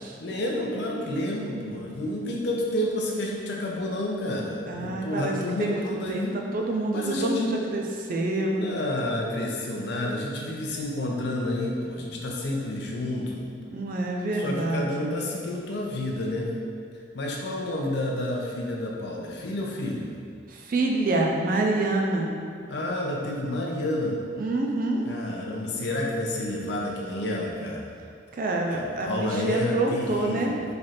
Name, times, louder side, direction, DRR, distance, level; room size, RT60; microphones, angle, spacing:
voice 1, 0.2-6.3 6.9-7.5 8.5-13.4 14.4-16.5 17.1-20.1 22.7-24.2 25.0-27.9 28.7-30.6, left 1 dB, 60° left, -1 dB, 0.5 m, -30 dB
voice 2, 4.7-5.3 5.6-5.8 6.1-6.2 6.5-8.6 13.7-15.1 20.5-22.3 24.4-25.1 28.3-30.5, right 2 dB, 45° right, 0 dB, 0.4 m, -27 dB
3.3 x 2.4 x 4.1 m, 2.2 s
head